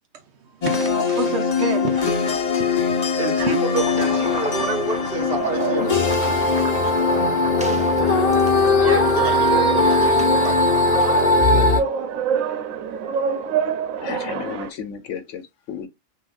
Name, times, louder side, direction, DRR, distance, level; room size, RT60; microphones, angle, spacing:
voice 1, 0.1-3.6 6.2-7.1, right 5 dB, 65° right, 0.8 m, -31 dB
sound 1, 0.6-11.8, left 3 dB, 45° left, 0.6 m, -20 dB
voice 2, 3.1-5.9 6.7-6.8 8.8-10.6, right 3 dB, 45° right, 1.3 m, -29 dB
sound 2, 3.7-11.4, right 1 dB, 10° right, 0.4 m, -34 dB
sound 3, 5.4-14.7, right 7 dB, 90° right, 1.0 m, -28 dB
voice 3, 14.0-15.9, left 7 dB, 70° left, 1.0 m, -32 dB
5.7 x 2.3 x 2.2 m
omnidirectional pair, 1.4 m